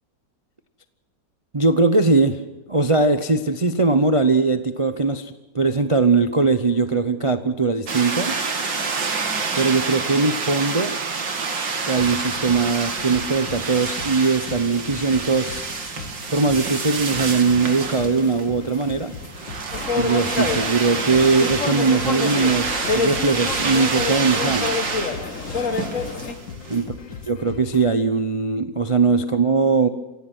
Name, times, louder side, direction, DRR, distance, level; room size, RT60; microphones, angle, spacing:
voice 1, 1.5-2.4 2.7-8.3 9.6-10.9 11.9-15.6 16.3-19.1 19.9-24.7 26.7-26.9 27.3-29.9, right 4 dB, 45° right, 9 dB, 0.4 m, -20 dB
sound 1, 7.9-26.8, right 4 dB, 85° right, 2.7 m, -28 dB
sound 2, 12.0-28.0, left 5 dB, 90° left, 2.0 m, -40 dB
sound 3, 19.7-26.3, left 4 dB, 45° left, 1.7 m, -27 dB
27.0 x 16.5 x 6.2 m, 1.1 s
omnidirectional pair, 1.9 m